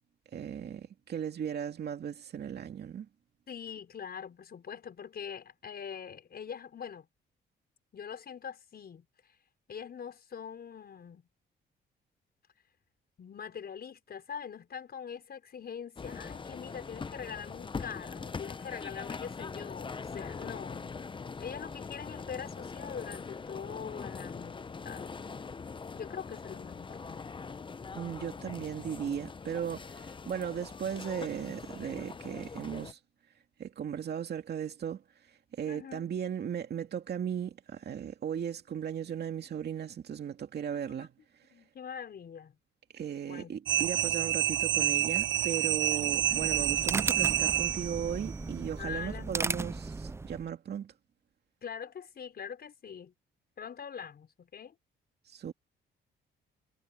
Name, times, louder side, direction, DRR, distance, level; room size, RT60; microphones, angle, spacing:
voice 1, 0.3-3.1 27.9-33.0 33.6-41.1 42.9-50.9 55.3-55.5, right 8 dB, 55° right, 2.4 m, -37 dB
voice 2, 3.5-7.1 7.9-9.1 9.7-11.3 13.2-20.9 21.4-25.1 25.9-27.3 35.7-36.1 40.8-41.1 41.5-42.6 43.2-43.5 43.8-44.1 46.3-46.5 48.4-49.8 51.6-53.1 53.6-54.7, left 7 dB, 50° left, 5.8 m, -43 dB
sound 1, 16.0-32.9, left 5 dB, 25° left, 0.7 m, -42 dB
sound 2, 43.7-48.2, right 12 dB, 80° right, 0.9 m, -28 dB
sound 3, 46.0-50.5, right 3 dB, 15° right, 0.4 m, -36 dB
cardioid pair, 90°, 20 cm